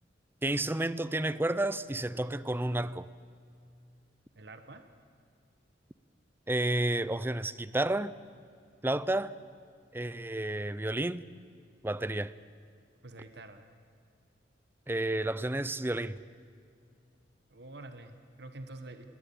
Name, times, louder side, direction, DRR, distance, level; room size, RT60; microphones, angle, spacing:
voice 1, 0.4-3.1 6.5-8.1 8.8-9.3 9.9-11.2 11.8-12.3 14.9-16.2, right 1 dB, 10° right, 16 dB, 0.6 m, -31 dB
voice 2, 4.3-4.8 13.0-13.7 17.5-19.0, right 2 dB, 65° right, 8 dB, 1.4 m, -47 dB
21.5 x 18.5 x 8.6 m, 2.3 s
head